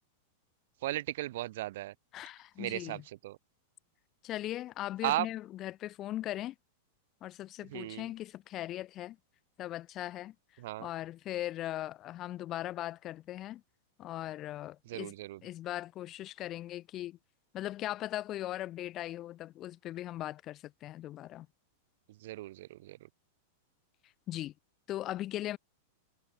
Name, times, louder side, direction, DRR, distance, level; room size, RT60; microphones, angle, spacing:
voice 1, 0.8-1.9 2.6-3.4 5.0-5.3 7.7-8.1 10.6-10.9 14.9-15.4 22.2-23.0, right 16 dB, 60° right, 0.8 m, -36 dB
voice 2, 2.1-3.0 4.2-6.5 7.2-9.2 9.6-10.3 10.8-13.6 14.0-15.1 15.4-17.2 17.5-21.5 24.3-24.5 24.9-25.6, left 14 dB, 30° left, 1.0 m, -39 dB
supercardioid pair, 155°, 0 cm